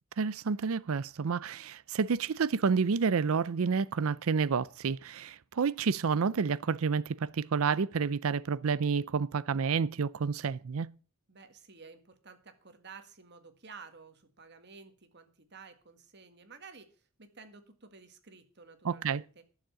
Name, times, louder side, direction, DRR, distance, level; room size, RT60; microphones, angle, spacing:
voice 1, 0.2-10.9 18.8-19.2, right 5 dB, 70° right, 0.5 m, -29 dB
voice 2, 11.3-19.4, right 5 dB, 50° right, 1.9 m, -53 dB
12.0 x 7.3 x 7.5 m
head